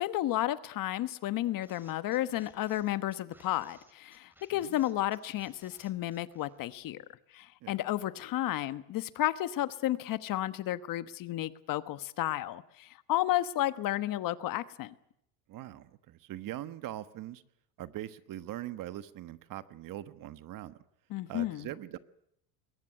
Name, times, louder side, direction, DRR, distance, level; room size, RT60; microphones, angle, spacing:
voice 1, 0.0-7.0 7.3-14.9 21.1-21.7, left 14 dB, 50° left, 1.2 m, -32 dB
sound 1, 1.6-6.9, right 1 dB, 5° right, 3.1 m, -61 dB
voice 2, 15.5-17.4 17.8-20.8 21.3-22.0, right 13 dB, 50° right, 1.3 m, -42 dB
22.0 x 18.5 x 9.9 m
cardioid pair, 135°, 43 cm